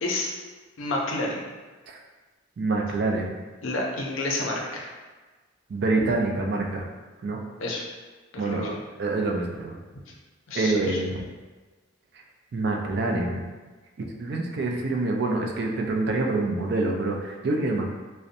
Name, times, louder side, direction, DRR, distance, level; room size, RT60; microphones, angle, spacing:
voice 1, 0.0-0.3 0.8-1.5 3.6-4.9 7.6-7.8 8.3-8.7 10.5-11.0, left 2 dB, 85° left, -1 dB, 0.5 m, -29 dB
voice 2, 2.6-3.4 5.7-6.9 7.2-7.4 8.4-8.7 9.0-9.8 10.5-11.3 12.5-13.5 14.2-17.9, right 2 dB, 55° right, 1 dB, 0.3 m, -26 dB
2.6 x 2.0 x 2.5 m, 1.3 s
head